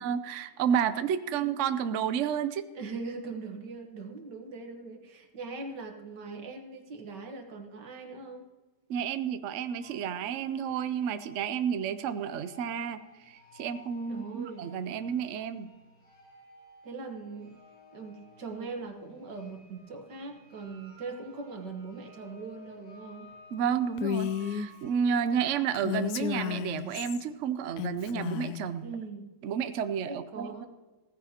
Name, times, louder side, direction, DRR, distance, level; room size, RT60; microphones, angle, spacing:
voice 1, 0.0-2.7 8.9-13.0 13.3-15.7 23.5-28.9 29.4-30.7, right 8 dB, 60° right, 11 dB, 0.8 m, -31 dB
voice 2, 2.7-8.5 14.1-14.7 16.8-17.5 17.9-23.3 28.8-29.3 30.1-30.7, right 4 dB, 85° right, 4 dB, 2.1 m, -41 dB
sound 1, 9.8-25.8, left 1 dB, 30° left, 4.3 m, -55 dB
Female speech woman speaking, 24.0-24.7 25.7-27.2 27.8-28.6, left 8 dB, 75° left, 1.1 m, -32 dB
16.5 x 15.0 x 2.9 m, 1.2 s
omnidirectional pair, 1.8 m